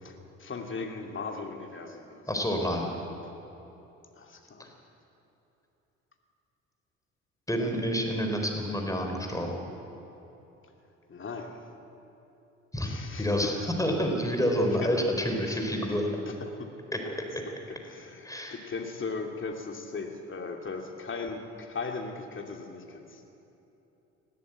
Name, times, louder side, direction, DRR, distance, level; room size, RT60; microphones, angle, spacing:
voice 1, 0.0-2.3 4.1-4.7 11.1-11.7 12.8-13.5 14.8-14.9 15.5-15.7 16.3-16.7 17.0-17.2 17.7-23.2, left 4 dB, 35° left, 3 dB, 2.7 m, -38 dB
voice 2, 2.3-2.9 4.6-4.7 7.5-9.6 12.7-12.9 13.2-13.5 13.8-16.1 16.9-17.0 18.2-18.6, equal, 10° left, 2 dB, 4.2 m, -28 dB
20.0 x 14.0 x 9.2 m, 3.0 s
hypercardioid pair, 50°, 37 cm